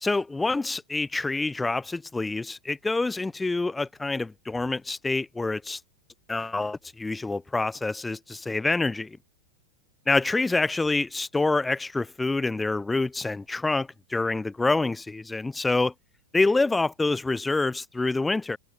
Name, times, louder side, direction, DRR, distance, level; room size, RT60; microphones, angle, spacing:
voice 1, 0.0-5.8 6.3-9.2 10.1-15.9 16.3-18.6, left 3 dB, 10° left, 0.6 m, -26 dB
figure-of-eight pair, 90°, 0 cm